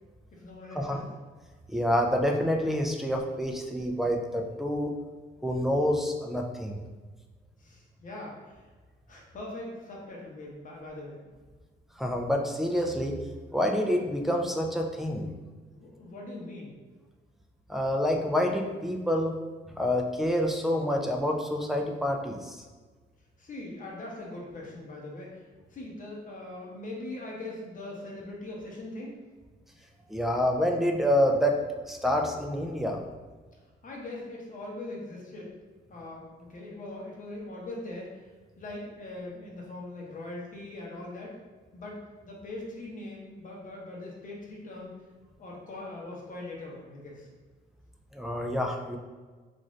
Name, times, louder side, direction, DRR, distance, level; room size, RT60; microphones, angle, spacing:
voice 1, 0.3-1.0 7.6-8.7 9.1-11.2 15.7-16.7 23.4-25.4 25.7-29.2 33.8-35.5 35.9-36.2 36.5-38.3 38.6-41.4 41.7-44.9 45.4-47.3, left 2 dB, 40° left, -3 dB, 0.9 m, -41 dB
voice 2, 1.7-5.0 5.4-6.8 12.0-13.2 13.5-15.3 17.7-19.4 19.7-22.6 30.1-33.0 48.1-49.0, equal, ahead, 2 dB, 0.4 m, -27 dB
2.5 x 2.5 x 3.1 m, 1.4 s
cardioid pair, 90°, 20 cm